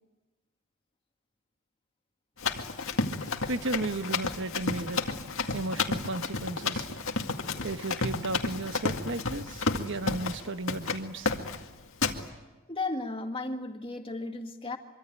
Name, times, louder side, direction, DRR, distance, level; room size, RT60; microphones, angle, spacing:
Run, 2.4-10.4 10.7-11.0 11.3-11.6 12.0-12.2, left 3 dB, 65° left, 2.1 m, -31 dB
voice 1, 3.2-5.0 5.5-7.0 7.3-11.4, right 2 dB, 55° right, 1.2 m, -35 dB
voice 2, 12.7-14.8, left 2 dB, 25° left, 2.3 m, -34 dB
25.0 x 24.5 x 9.2 m
head